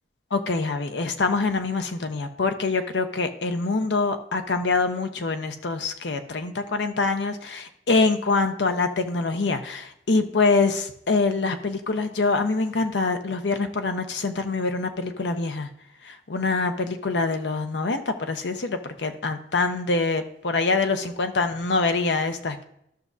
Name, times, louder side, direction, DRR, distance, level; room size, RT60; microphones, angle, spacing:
voice 1, 0.3-15.7 16.0-22.6, left 3 dB, 85° left, 7 dB, 0.7 m, -25 dB
14.0 x 6.0 x 2.7 m, 0.76 s
head